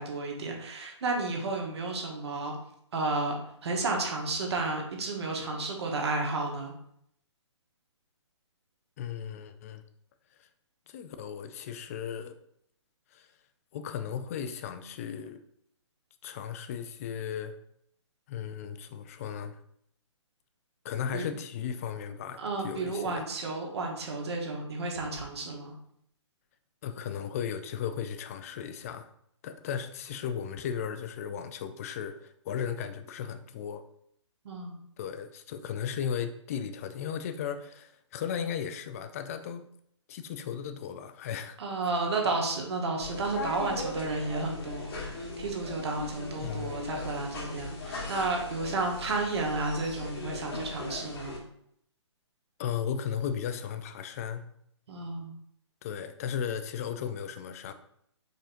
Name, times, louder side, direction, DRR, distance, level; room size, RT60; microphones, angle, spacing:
voice 1, 0.0-2.5 2.9-6.7 21.1-21.3 22.4-25.7 34.4-34.8 41.6-51.4 54.9-55.3, right 3 dB, 60° right, 0 dB, 1.2 m, -32 dB
voice 2, 9.0-9.8 10.4-10.5 10.9-12.3 13.1-13.3 13.7-15.4 16.2-17.6 18.3-19.6 20.8-23.3 26.8-29.1 29.4-33.8 35.0-39.6 40.1-41.6 46.4-46.7 52.6-54.5 55.8-57.7, left 8 dB, 30° left, 10 dB, 0.3 m, -36 dB
sound 1, 43.0-51.4, left 3 dB, 50° left, 1.2 m, -39 dB
5.0 x 4.2 x 2.5 m, 0.72 s
hypercardioid pair, 145°, 16 cm